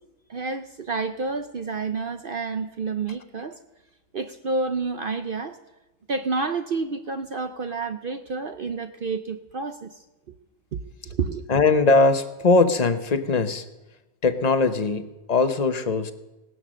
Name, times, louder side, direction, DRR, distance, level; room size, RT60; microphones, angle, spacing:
voice 1, 0.3-3.6 4.1-5.6 6.1-10.0 10.7-11.5, right 4 dB, 55° right, 8 dB, 0.6 m, -29 dB
voice 2, 11.5-13.7 14.2-16.1, left 3 dB, 35° left, 9 dB, 0.8 m, -20 dB
17.0 x 10.5 x 6.3 m, 1.0 s
omnidirectional pair, 1.6 m